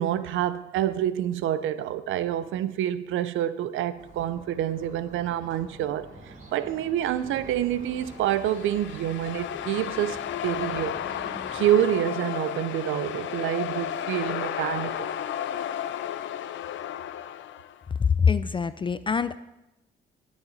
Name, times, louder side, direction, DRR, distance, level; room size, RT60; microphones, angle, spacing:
voice 1, 0.0-11.0 11.5-15.2, right 11 dB, 85° right, 0.6 m, -27 dB
sound 1, 4.0-11.8, right 2 dB, 40° right, 3.6 m, -46 dB
sound 2, 8.0-17.8, left 10 dB, 75° left, 0.6 m, -33 dB
voice 2, 18.2-19.4, left 6 dB, 25° left, 0.4 m, -24 dB
16.0 x 7.3 x 4.1 m
cardioid pair, 90°, 20 cm